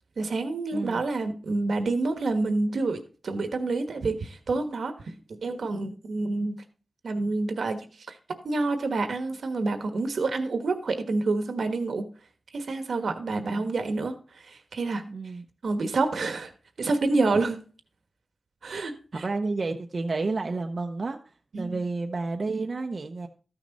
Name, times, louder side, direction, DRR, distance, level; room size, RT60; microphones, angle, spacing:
voice 1, 0.2-4.9 5.4-6.6 7.0-7.8 8.1-8.2 8.4-12.0 12.5-14.1 14.4-15.0 15.6-16.5 16.8-17.6 18.6-19.2 21.5-21.8, right 3 dB, 85° right, 8 dB, 1.3 m, -28 dB
voice 2, 13.4-13.7 15.1-15.4 19.1-21.2 21.5-23.3, right 3 dB, 55° right, 4 dB, 0.7 m, -31 dB
13.5 x 6.2 x 4.1 m, 0.37 s
wide cardioid pair, 80°, 0 cm